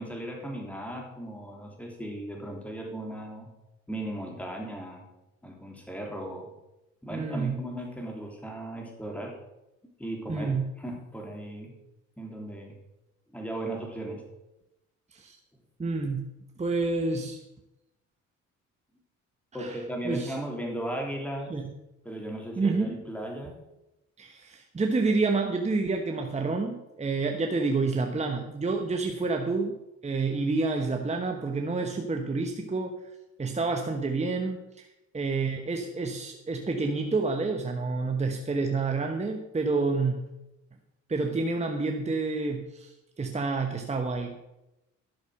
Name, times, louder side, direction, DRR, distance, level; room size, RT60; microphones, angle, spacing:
voice 1, 0.0-3.5 3.9-5.1 5.4-6.5 7.0-9.3 10.0-10.5 10.8-11.7 12.2-12.7 13.3-14.2 19.5-21.5 22.0-23.6, right 1 dB, 5° left, 0 dB, 3.1 m, -36 dB
voice 2, 7.1-7.5 10.3-10.7 15.1-15.4 15.8-16.2 16.6-17.4 19.6-19.8 20.0-20.4 21.5-21.7 22.6-23.0 24.2-29.7 30.0-33.0 33.4-34.9 35.1-40.2 41.1-44.4, right 3 dB, 20° right, 3 dB, 1.1 m, -28 dB
11.5 x 6.3 x 6.4 m, 0.94 s
cardioid pair, 90°, 30 cm